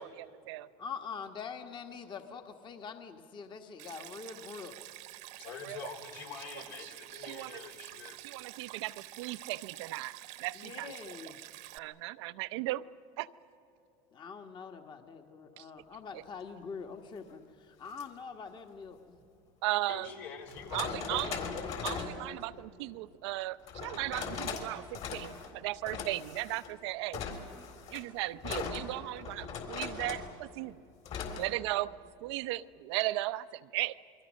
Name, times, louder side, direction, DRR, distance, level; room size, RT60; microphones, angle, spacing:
voice 1, 0.0-0.7 5.6-5.8 6.8-6.9 7.2-7.6 8.2-10.1 10.4-10.9 11.7-12.8 13.2-13.3 15.6-15.7 16.1-16.2 19.6-20.1 20.7-21.4 21.8-27.2 27.9-30.8 31.4-31.9 32.2-33.9, right 17 dB, 85° right, 13 dB, 0.7 m, -36 dB
voice 2, 0.8-4.7 10.5-11.4 14.1-19.2, left 5 dB, 35° left, 6 dB, 1.5 m, -44 dB
Stream, 3.8-11.8, right 15 dB, 65° right, 1.1 m, -48 dB
voice 3, 5.4-8.2 19.8-21.2 21.5-21.7, left 6 dB, 80° left, 3 dB, 4.5 m, -45 dB
sound 1, 17.9-18.0 19.6-19.7 20.5-22.2 23.7-24.7 24.9-25.5 25.9-26.7 27.1-30.3 31.1-31.5, left 6 dB, 50° left, 3.9 m, -39 dB
28.5 x 22.5 x 6.4 m, 2.6 s
supercardioid pair, 115°, 14 cm